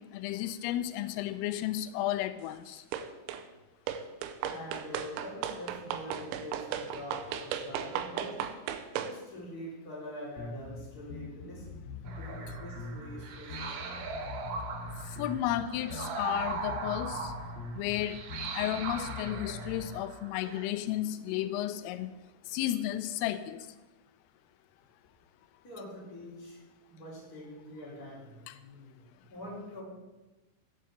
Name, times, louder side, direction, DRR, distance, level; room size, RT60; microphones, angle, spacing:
voice 1, 0.1-2.8 15.2-17.3 17.8-18.2 18.5-22.1 22.5-23.6 28.5-28.6, left 13 dB, 90° left, 12 dB, 3.2 m, -33 dB
running shoes, 2.9-3.5 3.9-9.2, right 9 dB, 85° right, 2.8 m, -36 dB
voice 2, 4.5-8.5 9.0-11.7 12.0-13.6 25.6-26.6 26.9-29.8, left 1 dB, 20° left, -5 dB, 3.4 m, -45 dB
sound 1, 10.4-20.0, left 3 dB, 55° left, 3.2 m, -43 dB
sound 2, 12.0-20.7, right 4 dB, 65° right, 2.6 m, -40 dB
8.1 x 7.6 x 8.1 m, 1.1 s
omnidirectional pair, 5.7 m